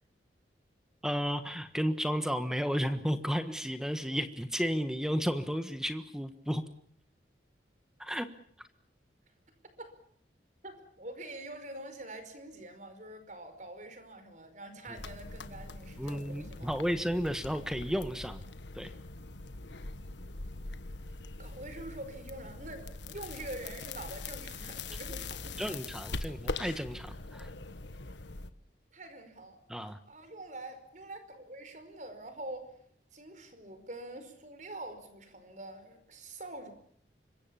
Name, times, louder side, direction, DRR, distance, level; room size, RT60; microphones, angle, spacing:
voice 1, 1.0-6.6 8.0-8.3 16.0-18.4 18.7-18.9 25.6-27.5 29.7-30.0, equal, 5° right, 9 dB, 1.4 m, -33 dB
voice 2, 10.6-16.7 21.1-25.8 28.9-29.6 30.1-32.7 33.1-36.7, right 1 dB, 45° right, 9 dB, 5.1 m, -45 dB
sound 1, 14.9-28.5, left 3 dB, 80° left, 1.4 m, -42 dB
25.5 x 23.0 x 7.1 m, 0.64 s
head